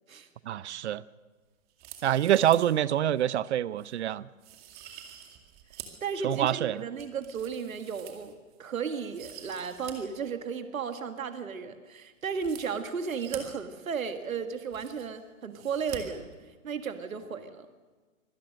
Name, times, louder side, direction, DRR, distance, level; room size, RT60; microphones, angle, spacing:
voice 1, 0.5-1.0 2.0-4.3 6.2-6.8, right 11 dB, 55° right, 20 dB, 0.7 m, -26 dB
sound 1, 1.7-2.8 3.2-3.3 3.8-3.9 4.4-6.0 6.5-8.6 9.0-9.9 10.2-10.3 12.3-13.4 14.2-14.3 14.5-15.2 15.5-16.0 16.3-16.4, right 12 dB, 25° right, 2.3 m, -47 dB
voice 2, 6.0-8.3 8.6-16.3 16.6-17.7, right 6 dB, 75° right, 8 dB, 1.7 m, -34 dB
24.5 x 17.5 x 6.5 m, 1.4 s
hypercardioid pair, 140°, 41 cm